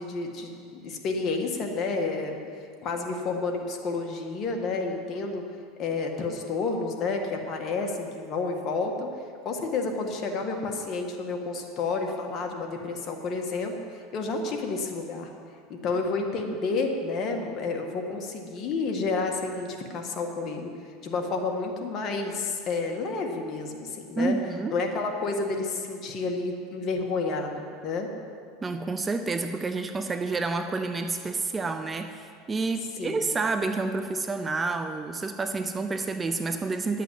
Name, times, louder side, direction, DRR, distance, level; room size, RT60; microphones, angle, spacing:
voice 1, 0.0-2.4 2.8-5.4 5.8-9.1 9.4-15.3 15.7-20.7 21.0-24.3 24.7-28.1 33.0-33.3, left 3 dB, 40° left, 2 dB, 1.7 m, -30 dB
voice 2, 24.2-24.8 28.6-37.0, right 3 dB, 20° right, 7 dB, 0.6 m, -29 dB
10.5 x 8.3 x 7.7 m, 2.3 s
supercardioid pair, 125°, 0 cm